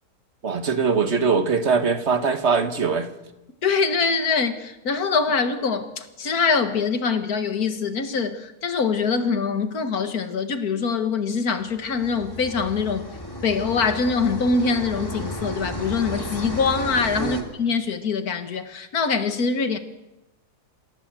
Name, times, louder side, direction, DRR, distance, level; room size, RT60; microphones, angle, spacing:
voice 1, 0.4-3.1 17.2-17.4, right 5 dB, 45° right, 8 dB, 1.7 m, -22 dB
voice 2, 3.6-13.0 13.4-19.8, left 5 dB, 65° left, 8 dB, 2.1 m, -24 dB
sound 1, 11.6-17.4, equal, 15° left, 3.3 m, -33 dB
27.0 x 16.0 x 7.6 m, 0.98 s
omnidirectional pair, 1.8 m